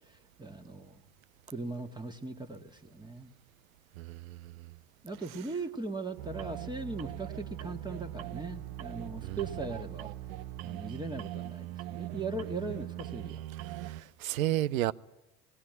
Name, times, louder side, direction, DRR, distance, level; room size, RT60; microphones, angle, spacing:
voice 1, 0.4-1.0 1.5-3.3 5.0-10.1 10.6-13.4, right 3 dB, 10° right, 1.7 m, -39 dB
voice 2, 4.0-4.5 9.2-9.4 13.7-14.9, right 14 dB, 80° right, 0.7 m, -32 dB
sound 1, 6.2-14.0, right 14 dB, 55° right, 0.8 m, -41 dB
18.5 x 18.0 x 9.2 m
hypercardioid pair, 85°, 41 cm